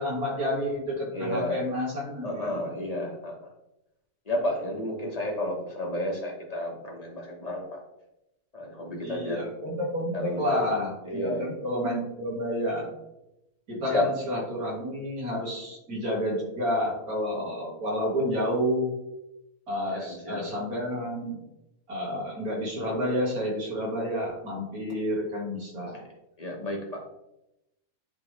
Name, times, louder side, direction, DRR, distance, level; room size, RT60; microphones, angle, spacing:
voice 1, 0.0-2.6 9.0-12.9 13.7-18.9 19.7-21.4 21.9-26.0, equal, 70° right, -4 dB, 2.8 m, -30 dB
voice 2, 1.1-1.6 2.2-3.3 4.3-7.8 8.5-9.4 10.1-10.7 11.0-11.5 13.9-14.0 19.9-20.4 25.8-25.9 26.4-27.1, left 1 dB, 25° left, -1 dB, 1.3 m, -32 dB
10.0 x 3.6 x 3.3 m, 0.89 s
omnidirectional pair, 1.6 m